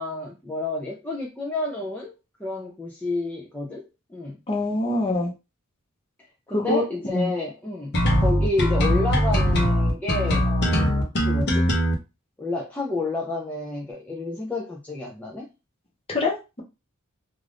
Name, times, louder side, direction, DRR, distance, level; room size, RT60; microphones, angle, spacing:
voice 1, 0.0-2.1 2.4-4.4 6.5-11.7 12.4-15.5, left 2 dB, 5° left, -2 dB, 0.4 m, -30 dB
voice 2, 4.5-5.3 6.5-7.3 16.1-16.6, left 2 dB, 25° left, 0 dB, 0.8 m, -25 dB
sound 1, 7.9-11.9, equal, 50° left, 0.8 m, -21 dB
2.5 x 2.4 x 3.3 m, 0.27 s
head